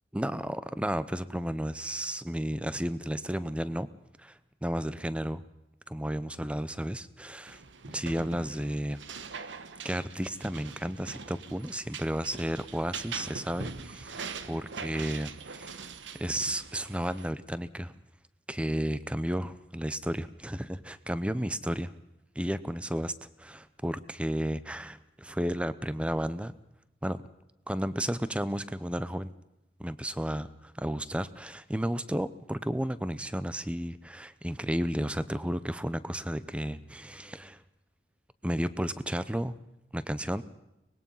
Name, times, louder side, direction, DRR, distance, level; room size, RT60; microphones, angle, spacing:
voice 1, 0.1-3.9 4.2-5.4 5.9-7.6 7.9-9.0 9.8-15.8 16.1-17.9 18.5-21.9 22.4-26.5 27.0-27.2 27.7-29.3 29.8-37.6 38.4-39.6 39.9-40.4, equal, 5° right, 15 dB, 0.6 m, -33 dB
sound 1, 7.5-17.3, right 5 dB, 85° right, 1.1 m, -43 dB
24.0 x 20.5 x 5.6 m, 0.92 s
head